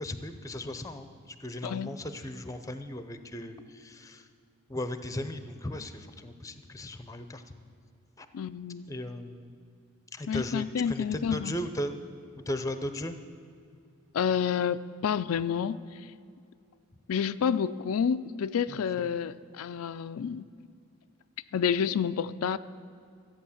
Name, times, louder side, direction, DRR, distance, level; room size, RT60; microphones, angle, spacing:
voice 1, 0.0-4.3 4.7-7.5 8.2-8.3 8.9-9.5 10.1-11.9 12.5-13.2 18.7-19.1, left 1 dB, 15° left, 10 dB, 0.6 m, -37 dB
voice 2, 1.6-1.9 8.3-8.9 10.3-11.5 14.1-16.1 17.1-20.4 21.5-22.6, left 7 dB, 85° left, 12 dB, 0.4 m, -29 dB
14.0 x 8.9 x 7.2 m, 2.5 s
head